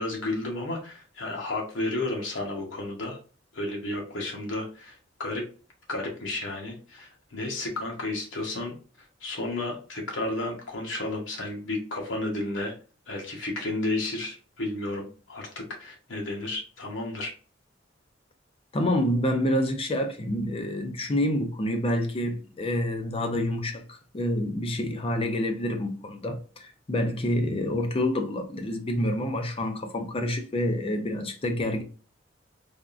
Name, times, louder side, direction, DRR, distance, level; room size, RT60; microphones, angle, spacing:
voice 1, 0.0-3.2 3.5-5.4 5.9-8.7 9.2-12.7 13.1-17.3, left 2 dB, 85° left, 0.9 m, -32 dB
voice 2, 18.7-31.8, left 1 dB, 30° left, 0.5 m, -28 dB
3.4 x 2.4 x 2.4 m
head